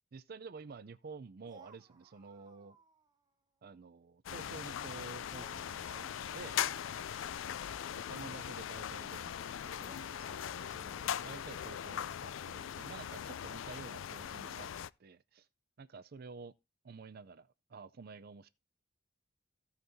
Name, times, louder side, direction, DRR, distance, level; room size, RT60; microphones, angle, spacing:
voice 1, 0.1-2.8 3.6-6.6 7.9-14.7 15.0-15.5 15.8-16.5 16.8-18.5, right 4 dB, 50° right, 0.5 m, -50 dB
sound 1, 1.4-3.3 3.6-3.8 5.3-9.1 9.8-12.3 13.5-13.7, right 3 dB, 20° right, 0.9 m, -62 dB
sound 2, 4.3-14.9, left 9 dB, 85° left, 0.4 m, -40 dB
15.5 x 5.8 x 2.7 m
head